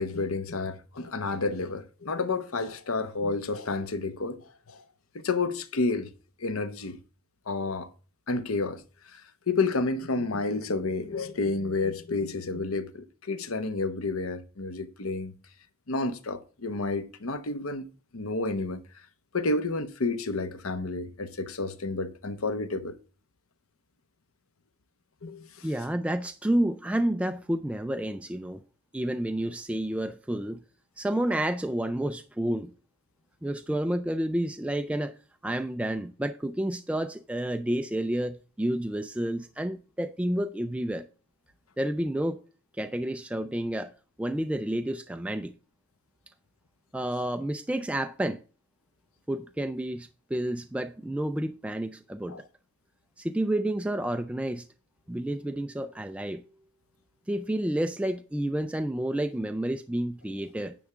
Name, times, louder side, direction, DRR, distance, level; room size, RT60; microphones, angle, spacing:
voice 1, 0.0-4.8 5.1-6.1 6.4-7.0 7.5-7.9 8.3-8.8 9.1-9.2 9.5-15.3 15.9-17.9 18.1-18.8 19.3-23.0 25.2-25.7 52.3-52.4, left 3 dB, 80° left, 0.9 m, -30 dB
voice 2, 25.6-28.6 28.9-30.6 31.0-32.7 33.4-35.2 35.4-41.1 41.8-42.4 42.7-43.9 44.2-45.5 46.9-48.4 49.3-52.5 53.2-54.7 55.1-56.4 57.3-60.8, right 1 dB, 5° right, 0.3 m, -30 dB
10.0 x 3.5 x 7.0 m
head